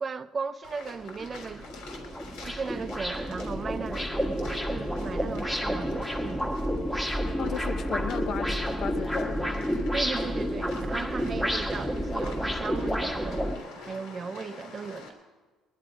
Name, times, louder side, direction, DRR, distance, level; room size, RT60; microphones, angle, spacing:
voice 1, 0.0-1.7 2.4-4.1 4.7-6.5 9.9-15.1, right 5 dB, 30° right, 0.6 m, -36 dB
sound 1, 0.6-15.1, left 4 dB, 85° left, 3.3 m, -48 dB
sound 2, 0.6-0.7 1.2-13.6, equal, 5° left, 1.4 m, -30 dB
voice 2, 7.4-9.7, left 7 dB, 50° left, 0.7 m, -35 dB
21.0 x 11.5 x 5.0 m
cardioid pair, 110°, 0 cm